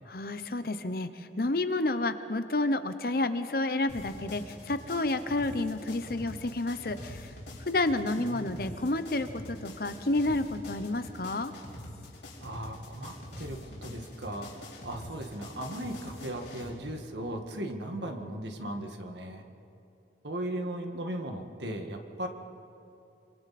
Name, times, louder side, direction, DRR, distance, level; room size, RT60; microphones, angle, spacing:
voice 1, 0.1-7.3 7.7-11.5, left 2 dB, 55° left, 10 dB, 0.9 m, -30 dB
sound 1, 3.9-16.7, left 1 dB, 75° left, 4.8 m, -45 dB
voice 2, 8.2-8.5 12.4-19.5 20.2-22.3, right 1 dB, 80° right, 4 dB, 1.9 m, -37 dB
26.0 x 25.5 x 4.3 m, 2.8 s
head